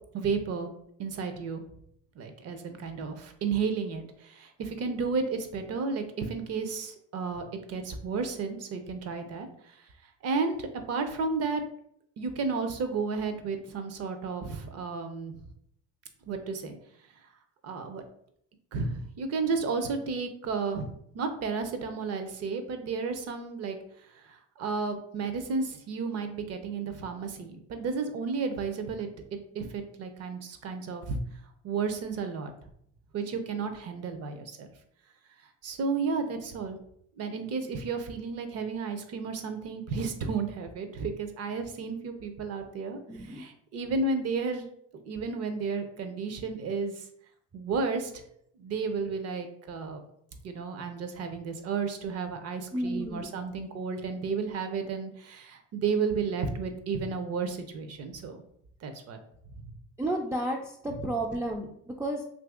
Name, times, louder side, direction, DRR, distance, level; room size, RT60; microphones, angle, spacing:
voice 1, 0.1-0.7 1.0-1.6 2.2-9.5 10.2-11.6 12.2-15.3 16.3-16.8 17.6-18.0 18.7-20.9 21.1-23.8 24.2-31.2 31.6-32.5 33.1-34.7 35.6-36.8 37.2-43.0 43.4-44.7 45.1-47.0 47.5-48.2 48.6-50.0 50.4-58.4 58.8-59.2, right 4 dB, 50° right, 7 dB, 0.6 m, -32 dB
voice 2, 43.1-43.5 52.7-53.3 60.0-62.2, right 1 dB, 10° right, -2 dB, 0.3 m, -32 dB
2.8 x 2.6 x 3.6 m, 0.70 s
supercardioid pair, 100°, 32 cm